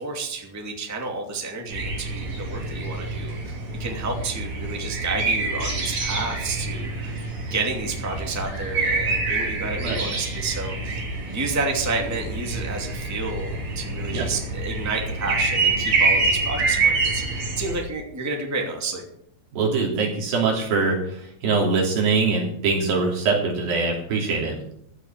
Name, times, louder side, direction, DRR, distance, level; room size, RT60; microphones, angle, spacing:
voice 1, 0.0-7.1 7.5-11.0 11.3-19.0, right 3 dB, 5° right, 1 dB, 2.0 m, -30 dB
sound 1, 1.7-17.8, right 3 dB, 50° right, 4.4 m, -26 dB
voice 2, 19.5-24.5, right 4 dB, 75° right, -1 dB, 5.0 m, -23 dB
15.0 x 6.7 x 8.9 m, 0.70 s
omnidirectional pair, 4.2 m